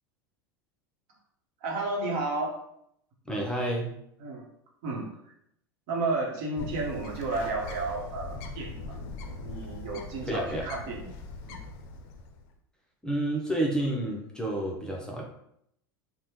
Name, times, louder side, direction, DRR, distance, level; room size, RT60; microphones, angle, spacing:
voice 1, 1.6-2.6 4.2-4.5 4.8-5.1 5.9-9.0 9.4-11.1 11.4-11.6, right 3 dB, 60° right, -2 dB, 0.9 m, -32 dB
voice 2, 3.3-3.9 6.6-6.7 10.2-10.6 13.0-15.2, right 1 dB, 5° left, -3 dB, 0.6 m, -30 dB
Bird, 6.6-12.5, left 3 dB, 55° left, 0.4 m, -41 dB
3.2 x 2.1 x 2.9 m, 0.74 s
hypercardioid pair, 95°, 12 cm